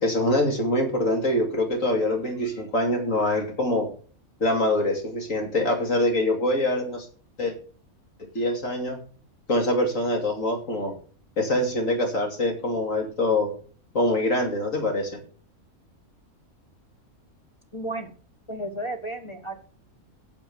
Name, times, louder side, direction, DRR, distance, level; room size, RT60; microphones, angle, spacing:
voice 1, 0.0-3.9 4.4-7.1 7.4-7.5 8.2-9.0 9.5-11.0 11.4-13.5 13.9-15.2, left 1 dB, 65° left, 3 dB, 3.1 m, -24 dB
voice 2, 17.7-18.1 18.5-19.6, right 1 dB, 20° left, 4 dB, 1.6 m, -33 dB
9.0 x 7.5 x 7.9 m, 0.42 s
omnidirectional pair, 1.5 m